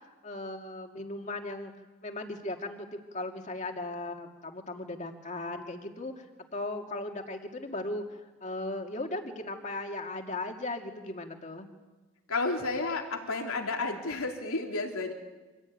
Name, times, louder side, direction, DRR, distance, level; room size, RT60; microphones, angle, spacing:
voice 1, 0.2-1.7 2.0-6.3 6.5-11.7, left 2 dB, 35° left, 4 dB, 2.2 m, -37 dB
voice 2, 12.3-15.1, left 3 dB, 85° left, 2 dB, 3.3 m, -31 dB
26.0 x 17.0 x 9.4 m, 1.2 s
head